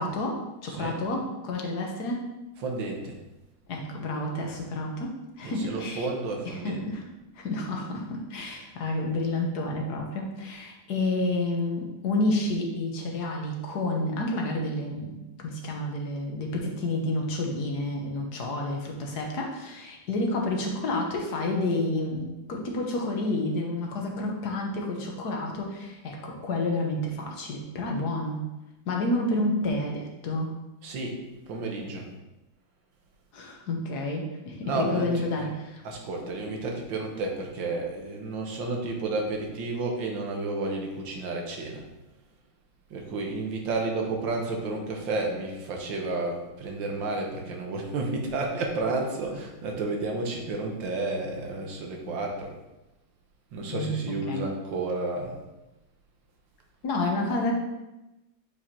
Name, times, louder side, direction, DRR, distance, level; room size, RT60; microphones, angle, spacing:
voice 1, 0.0-2.3 3.7-6.1 6.4-7.0 7.3-28.4 28.9-30.5 33.3-35.8 53.7-53.9 54.3-54.4 56.8-57.5, left 2 dB, 55° left, 0 dB, 1.4 m, -30 dB
voice 2, 2.6-3.2 5.4-6.8 30.8-31.2 31.5-32.1 34.6-35.5 35.8-41.8 42.9-52.5 53.5-55.4, right 3 dB, 65° right, 1 dB, 1.7 m, -31 dB
8.8 x 4.8 x 2.8 m, 0.99 s
omnidirectional pair, 2.3 m